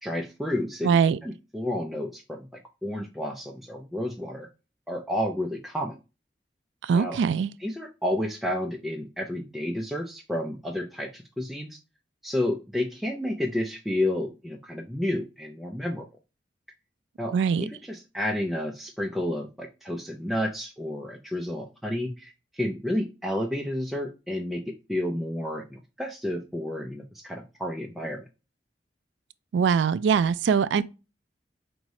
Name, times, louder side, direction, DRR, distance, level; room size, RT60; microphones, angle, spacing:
voice 1, 0.0-1.0 1.2-4.5 4.9-6.0 6.9-7.2 7.6-11.8 12.2-16.1 17.2-28.2, left 1 dB, ahead, 0.4 m, -31 dB
voice 2, 0.8-1.2 6.8-7.5 17.3-17.7 29.5-30.8, right 6 dB, 85° right, 0.3 m, -22 dB
4.8 x 2.6 x 3.0 m
head